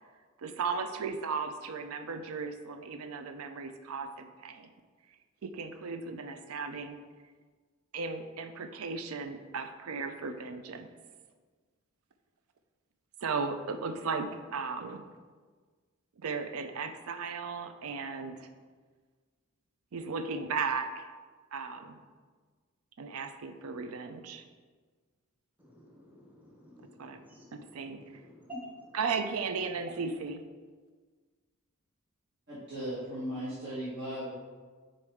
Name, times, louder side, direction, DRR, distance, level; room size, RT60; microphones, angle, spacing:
voice 1, 0.4-4.7 5.4-7.0 7.9-10.9 13.2-15.0 16.2-18.5 19.9-21.1 21.5-22.0 23.0-24.4 27.0-27.2 27.5-28.0 28.9-30.4, right 5 dB, 80° right, 8 dB, 0.5 m, -36 dB
voice 2, 25.6-29.0, left 1 dB, 10° right, -3 dB, 0.8 m, -50 dB
voice 3, 32.5-34.3, equal, 55° right, -10 dB, 1.4 m, -37 dB
6.4 x 4.2 x 3.5 m, 1.5 s
head